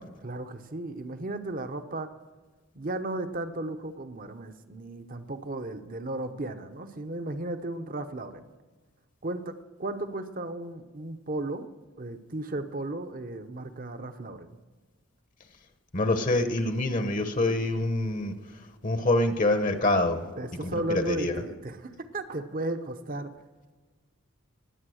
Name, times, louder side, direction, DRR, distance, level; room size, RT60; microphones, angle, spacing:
voice 1, 0.2-2.1 2.7-8.5 9.2-11.7 12.0-14.6 20.4-23.3, right 2 dB, 40° right, 9 dB, 0.8 m, -35 dB
voice 2, 15.9-18.3 18.8-20.2 20.6-21.3, left 2 dB, 35° left, 8 dB, 0.9 m, -25 dB
20.0 x 8.5 x 6.4 m, 1.3 s
head